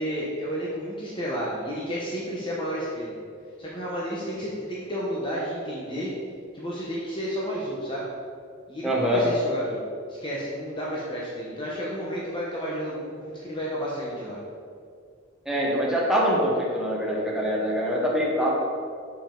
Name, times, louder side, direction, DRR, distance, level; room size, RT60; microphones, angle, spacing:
voice 1, 0.0-3.2 3.6-6.1 6.5-8.1 8.7-9.8 10.1-14.4, equal, 25° left, -6 dB, 0.9 m, -31 dB
voice 2, 8.8-9.2 15.4-18.5, equal, ahead, -5 dB, 1.3 m, -24 dB
6.8 x 5.3 x 3.8 m, 2.2 s
head